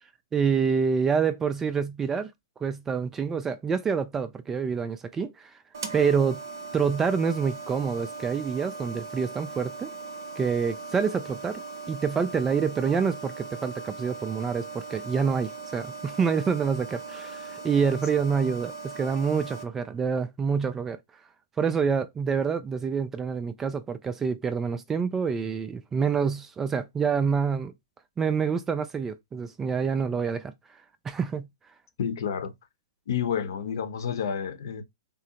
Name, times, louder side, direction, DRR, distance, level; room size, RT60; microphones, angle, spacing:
voice 1, 0.3-2.3 2.6-5.5 5.9-6.4 6.7-9.9 10.4-11.6 11.9-21.0 21.6-27.7 28.2-30.5 31.0-31.5, right 6 dB, 15° right, 0.3 m, -27 dB
sound 1, 5.7-19.6, right 4 dB, 65° right, 0.7 m, -39 dB
voice 2, 32.0-32.5 33.1-34.8, left 7 dB, 60° left, 0.7 m, -29 dB
3.7 x 2.0 x 2.8 m
hypercardioid pair, 125°, 2 cm